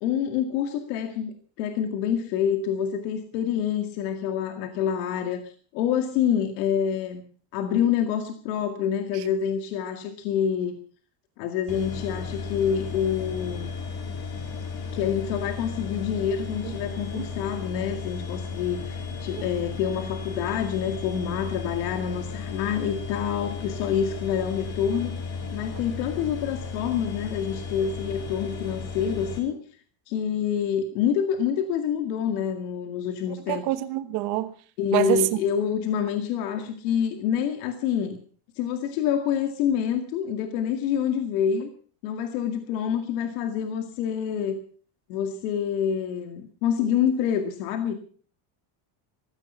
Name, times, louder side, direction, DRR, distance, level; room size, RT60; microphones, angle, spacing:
voice 1, 0.0-7.2 7.5-10.8 11.4-13.7 14.9-25.2 25.5-29.6 30.1-33.6 34.8-38.2 38.6-41.7 42.0-44.6 45.1-47.9, left 8 dB, 85° left, 2.2 m, -27 dB
sound 1, 11.7-29.4, left 5 dB, 40° left, 3.2 m, -35 dB
voice 2, 16.9-17.3 33.5-34.5 34.9-35.2, right 16 dB, 50° right, 1.3 m, -26 dB
15.5 x 14.5 x 5.6 m
cardioid pair, 165°, 48 cm